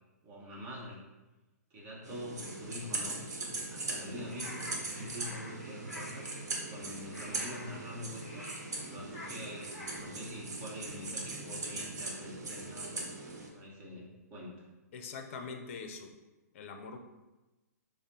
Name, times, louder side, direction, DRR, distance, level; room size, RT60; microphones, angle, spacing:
voice 1, 0.2-1.0 1.7-6.3 6.7-13.1 13.5-14.7, left 1 dB, 30° right, -4 dB, 0.9 m, -45 dB
sound 1, 2.0-13.5, right 2 dB, 80° right, 0.9 m, -40 dB
sound 2, 4.3-10.0, left 1 dB, 15° left, 1.1 m, -48 dB
voice 2, 14.9-16.1 16.5-17.0, left 5 dB, 50° left, 5 dB, 0.5 m, -43 dB
4.7 x 2.0 x 2.8 m, 1.1 s
hypercardioid pair, 145°, 9 cm